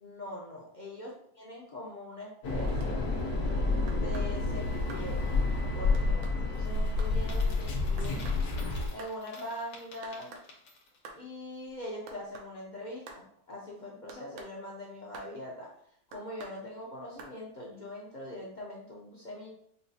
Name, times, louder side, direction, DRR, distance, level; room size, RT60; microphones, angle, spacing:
voice 1, 0.0-1.1 1.4-3.0 3.8-5.2 5.7-8.2 8.9-10.4 11.1-15.7 16.1-19.5, left 1 dB, 55° left, -3 dB, 0.5 m, -42 dB
sound 1, 2.4-8.9, left 3 dB, 70° left, 1.2 m, -29 dB
sound 2, 2.8-2.9 3.9-4.3 4.9-5.1 5.9-6.4 7.0-7.1 8.0-8.4 9.0-9.2 10.0-10.5 11.0-11.2 12.1-12.5 13.1-13.2 14.1-14.5 15.1-15.3 16.1-16.6 17.2-17.3, right 4 dB, 70° right, 1.0 m, -47 dB
Coin (dropping), 7.2-11.1, left 3 dB, 90° left, 1.4 m, -52 dB
5.5 x 2.3 x 2.6 m, 0.66 s
omnidirectional pair, 1.6 m